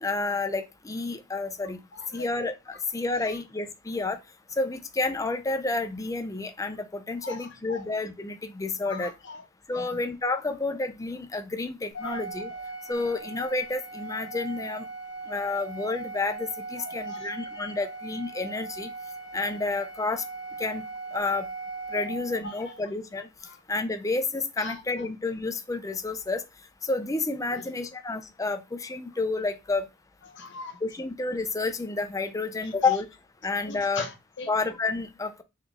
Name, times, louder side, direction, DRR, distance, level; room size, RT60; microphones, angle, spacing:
voice 1, 0.0-1.8 2.1-4.2 4.6-9.1 9.7-12.5 12.9-14.9 15.3-18.9 19.3-20.2 20.6-20.8 21.1-21.5 21.9-23.3 23.7-26.4 26.8-29.9 30.8-33.1 33.4-34.0 34.5-35.4, left 3 dB, 15° left, 0.4 m, -30 dB
voice 2, 1.9-2.3 7.2-7.8 8.9-9.4 9.7-9.9 12.0-12.2 16.8-17.3 17.8-17.9 22.4-22.5 23.4-23.6 24.6-25.1 27.5-27.7 30.3-30.8 33.7-34.5, left 3 dB, 55° left, 0.8 m, -40 dB
Organ, 11.9-22.8, right 3 dB, 80° left, 0.9 m, -39 dB
4.0 x 3.1 x 3.5 m
head